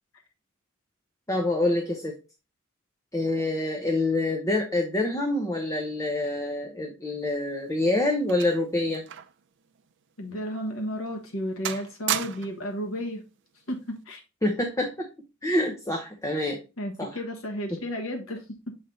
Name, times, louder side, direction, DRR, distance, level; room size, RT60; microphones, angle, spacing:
voice 1, 1.3-2.2 3.1-9.1 14.4-15.1 15.4-16.6 17.0-17.2, left 2 dB, 15° left, 0.8 m, -26 dB
sound 1, 7.3-9.5 9.7-9.9 10.5-10.7 11.1-11.4 11.6-12.7 13.7-14.0, right 10 dB, 60° right, 0.5 m, -34 dB
voice 2, 10.2-13.2 13.7-14.2 16.8-18.7, equal, 70° left, 1.4 m, -33 dB
7.3 x 3.4 x 3.9 m
head